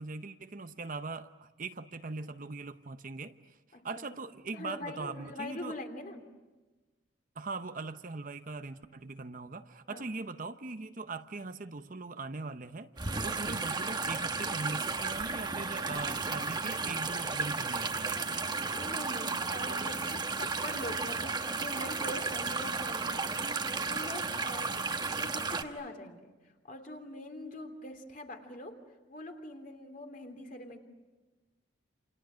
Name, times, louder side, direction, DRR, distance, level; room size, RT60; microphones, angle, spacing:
voice 1, 0.0-5.8 7.4-18.4, right 3 dB, 45° right, 9 dB, 0.8 m, -41 dB
voice 2, 3.7-4.1 4.5-6.3 9.9-10.1 13.1-13.4 18.6-23.3 23.8-24.7 25.1-28.8 29.1-30.8, left 1 dB, 45° left, 4 dB, 2.9 m, -43 dB
sound 1, 13.0-25.6, right 4 dB, 20° right, 1.1 m, -34 dB
28.5 x 28.5 x 6.3 m, 1.2 s
head